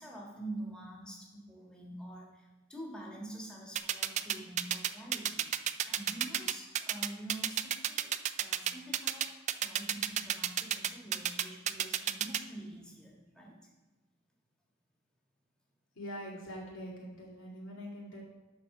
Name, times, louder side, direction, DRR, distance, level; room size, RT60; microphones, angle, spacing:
voice 1, 0.0-13.7, right 1 dB, 5° left, -3 dB, 1.7 m, -46 dB
sound 1, 3.8-12.4, right 10 dB, 35° right, 0.3 m, -30 dB
voice 2, 16.0-18.2, equal, 80° left, -3 dB, 2.5 m, -43 dB
12.0 x 4.3 x 4.9 m, 1.2 s
head